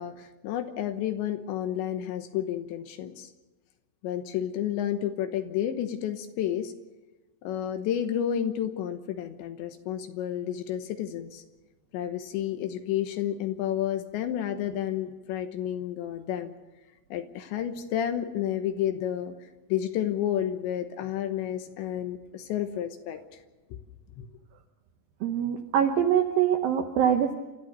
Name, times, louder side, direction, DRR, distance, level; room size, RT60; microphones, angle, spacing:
voice 1, 0.0-3.3 4.0-6.7 7.4-11.4 11.9-16.5 17.1-19.3 19.7-23.2 23.7-23.8 24.2-24.3, left 10 dB, 75° left, 8 dB, 3.1 m, -31 dB
voice 2, 25.2-27.3, right 9 dB, 80° right, 5 dB, 2.1 m, -24 dB
29.0 x 13.5 x 6.7 m, 1.2 s
omnidirectional pair, 5.7 m